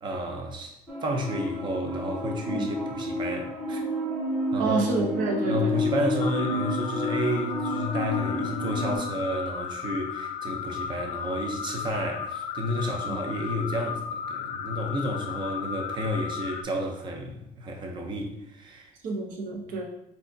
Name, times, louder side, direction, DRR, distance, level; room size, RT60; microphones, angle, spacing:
voice 1, 0.0-3.8 4.5-5.1 5.5-18.9, equal, 35° right, 0.6 m, -31 dB
sound 1, 0.9-9.0, left 1 dB, 5° right, 1.0 m, -30 dB
voice 2, 4.6-5.8 13.1-13.2 19.0-19.9, right 3 dB, 75° right, 0.8 m, -28 dB
sound 2, 6.2-16.6, left 7 dB, 65° left, 0.4 m, -35 dB
4.6 x 3.9 x 2.7 m
cardioid pair, 165°, 14 cm